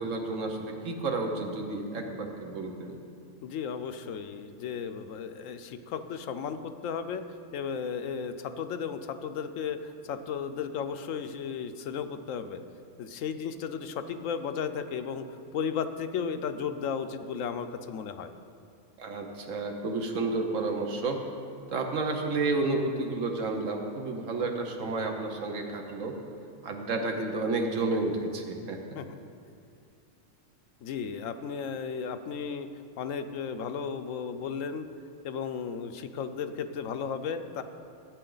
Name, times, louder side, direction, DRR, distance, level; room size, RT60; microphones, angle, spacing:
voice 1, 0.0-3.0 19.0-21.2 21.7-26.1 26.6-29.0, right 3 dB, 75° right, 3 dB, 1.4 m, -31 dB
voice 2, 3.4-7.2 7.5-12.6 13.0-18.3 28.9-29.1 30.8-32.7 33.0-34.9 35.2-37.6, left 6 dB, 80° left, 9 dB, 1.0 m, -34 dB
14.5 x 8.3 x 3.9 m, 2.4 s
omnidirectional pair, 1.3 m